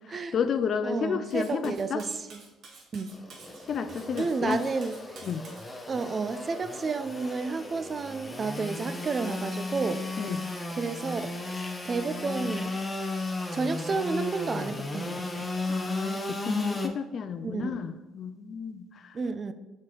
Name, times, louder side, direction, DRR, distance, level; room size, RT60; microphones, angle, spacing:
voice 1, 0.3-2.0 3.7-4.6 5.2-5.4 10.2-10.4 15.7-19.2, left 6 dB, 55° left, 10 dB, 0.3 m, -32 dB
voice 2, 0.8-2.4 2.9-3.2 4.2-5.0 5.9-10.0 10.7-11.3 11.8-12.7 13.5-15.5 17.4-17.8 19.1-19.5, right 4 dB, 40° right, 10 dB, 0.4 m, -31 dB
Cutlery silverware, 1.3-5.7, right 4 dB, 60° right, 0.9 m, -50 dB
Engine / Sawing, 3.1-16.9, left 2 dB, 20° left, 0.7 m, -35 dB
4.3 x 3.1 x 3.7 m, 1.1 s
hypercardioid pair, 60°, 0 cm